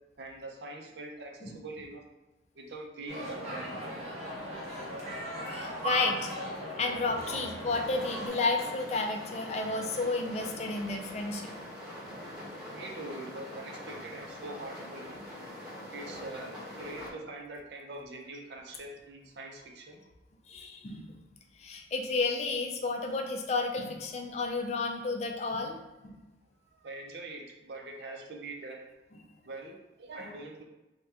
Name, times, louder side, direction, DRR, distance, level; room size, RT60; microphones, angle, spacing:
voice 1, 0.2-2.0 2.6-3.7 12.7-15.3 15.9-20.0 26.7-28.9 29.4-30.6, right 2 dB, 70° right, 1 dB, 0.5 m, -43 dB
sound 1, 3.1-8.3, equal, 40° right, 0.8 m, -38 dB
voice 2, 5.5-6.3 6.8-11.5 20.5-21.1 21.6-25.8 26.0-26.2, left 3 dB, 40° left, 3 dB, 0.3 m, -31 dB
sound 2, 7.7-17.1, left 1 dB, 5° right, 1.0 m, -43 dB
2.8 x 2.1 x 3.4 m, 1.1 s
head